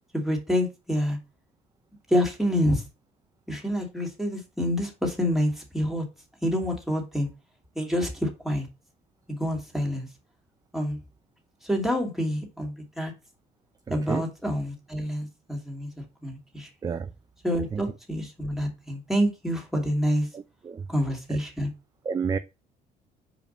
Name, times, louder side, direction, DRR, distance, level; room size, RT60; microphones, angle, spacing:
voice 1, 0.1-1.2 2.1-2.8 3.5-6.0 6.4-7.3 7.8-8.7 9.4-10.1 10.7-11.0 11.6-13.1 13.9-15.9 16.2-16.7 17.4-20.3 20.9-21.7, equal, ahead, 2.5 m, -27 dB
voice 2, 20.3-20.8 21.3-21.4 22.1-22.4, right 6 dB, 20° right, 0.4 m, -30 dB
5.1 x 5.1 x 5.3 m
cardioid pair, 110°, 17 cm